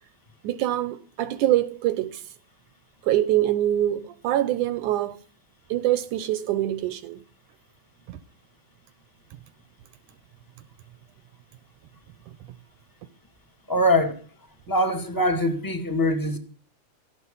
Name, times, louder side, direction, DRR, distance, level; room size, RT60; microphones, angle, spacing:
voice 1, 0.4-2.2 3.0-5.2 5.7-7.2 8.1-8.2, right 13 dB, 75° right, 2.1 m, -24 dB
voice 2, 13.7-14.2 14.7-16.4, left 1 dB, 10° left, 1.5 m, -23 dB
17.0 x 13.5 x 5.5 m
omnidirectional pair, 3.9 m